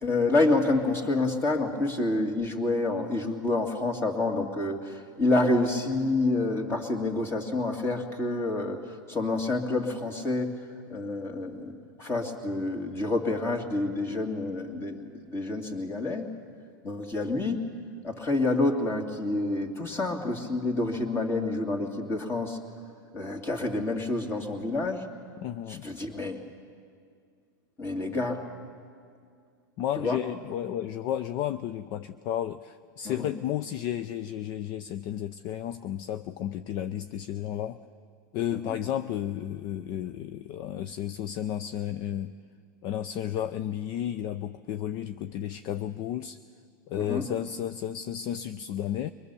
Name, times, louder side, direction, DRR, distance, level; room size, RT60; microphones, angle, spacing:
voice 1, 0.0-8.8 9.1-10.5 10.9-16.3 16.8-17.6 18.0-22.6 23.1-25.0 25.7-26.4 27.8-28.4 30.0-30.2 33.0-33.3 38.6-38.8 47.0-47.3, left 2 dB, 25° left, 3 dB, 2.4 m, -28 dB
voice 2, 25.4-25.9 29.8-37.8 38.3-42.3 42.8-46.4 46.9-49.1, left 11 dB, 45° left, 12 dB, 0.5 m, -32 dB
23.5 x 20.5 x 6.9 m, 2.2 s
supercardioid pair, 130°, 11 cm